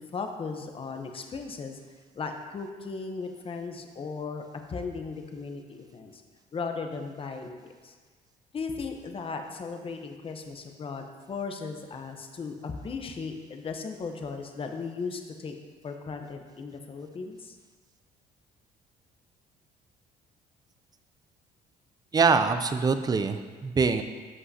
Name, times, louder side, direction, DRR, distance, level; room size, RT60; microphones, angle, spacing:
voice 1, 0.0-1.8 2.1-6.2 6.5-7.6 7.8-7.9 8.5-15.5 15.8-17.6, left 4 dB, 35° left, 4 dB, 0.9 m, -36 dB
voice 2, 22.1-24.0, right 5 dB, 25° right, 10 dB, 0.5 m, -24 dB
13.5 x 5.5 x 2.8 m, 1.5 s
cardioid pair, 110°, 17 cm